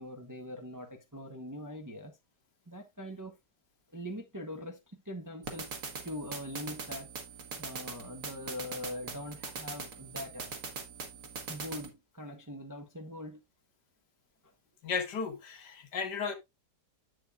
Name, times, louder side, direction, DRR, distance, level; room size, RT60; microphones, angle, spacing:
voice 1, 0.0-2.2 2.7-3.4 3.9-5.7 6.0-7.1 7.6-10.7 11.5-13.4 14.4-14.5, left 1 dB, 15° right, 0.6 m, -42 dB
sound 1, 5.4-11.9, right 4 dB, 55° right, 1.8 m, -42 dB
voice 2, 14.8-16.4, left 5 dB, 75° left, 1.9 m, -34 dB
8.3 x 7.7 x 2.4 m
omnidirectional pair, 1.8 m